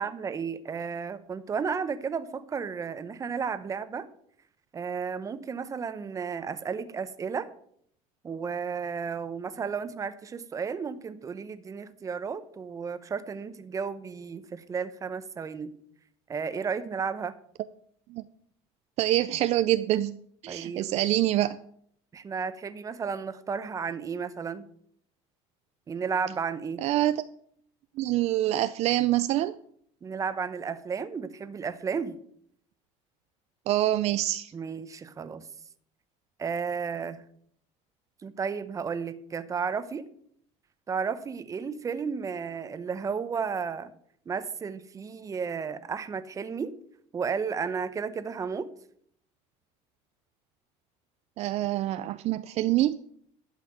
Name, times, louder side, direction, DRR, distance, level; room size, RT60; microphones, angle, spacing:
voice 1, 0.0-4.1 4.7-7.5 8.2-15.7 16.3-17.4 20.5-20.9 22.1-24.7 25.9-26.8 30.0-32.2 34.5-35.4 36.4-37.2 38.2-40.1 40.9-43.9 44.3-46.8 47.1-48.7, right 6 dB, 25° right, 13 dB, 0.8 m, -33 dB
voice 2, 19.0-20.2 20.4-21.6 26.8-27.2 28.0-29.6 33.7-34.5 51.4-53.0, right 14 dB, 50° right, 13 dB, 0.5 m, -25 dB
12.0 x 5.7 x 7.8 m, 0.65 s
cardioid pair, 135°, 14 cm